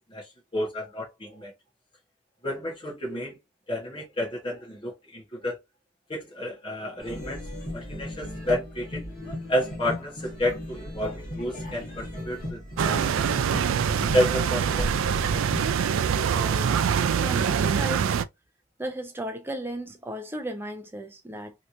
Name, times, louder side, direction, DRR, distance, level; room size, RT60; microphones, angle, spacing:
voice 1, 0.5-1.5 2.4-3.3 3.7-5.6 6.1-7.4 7.7-9.0 9.5-12.6 12.8-13.2 14.1-15.0, equal, 25° left, 1.1 m, -30 dB
sound 1, 7.0-15.7, left 1 dB, 40° left, 1.4 m, -36 dB
sound 2, 12.8-18.2, right 7 dB, 60° right, 0.3 m, -24 dB
voice 2, 16.2-16.7 17.1-18.1 18.8-21.5, right 1 dB, 10° right, 0.6 m, -35 dB
3.3 x 2.9 x 2.5 m
head